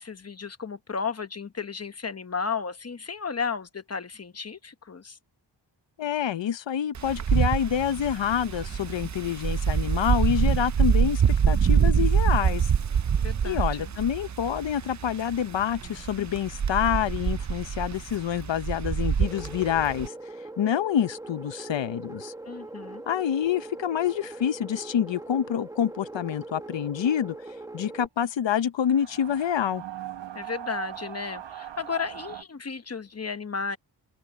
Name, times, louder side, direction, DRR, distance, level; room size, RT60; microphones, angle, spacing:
voice 1, 0.0-5.2 13.2-13.9 22.4-23.0 30.3-33.8, left 5 dB, 35° left, 0.9 m, -33 dB
voice 2, 6.0-12.7 13.4-20.1 20.6-22.3 23.1-27.4 27.7-29.8, left 9 dB, 80° left, 0.7 m, -27 dB
Wind, 6.9-20.1, right 7 dB, 40° right, 0.6 m, -25 dB
sound 1, 19.2-28.1, right 2 dB, 10° right, 1.3 m, -41 dB
sound 2, 28.8-32.4, right 12 dB, 80° right, 0.9 m, -39 dB
open air
wide cardioid pair, 145°, 43 cm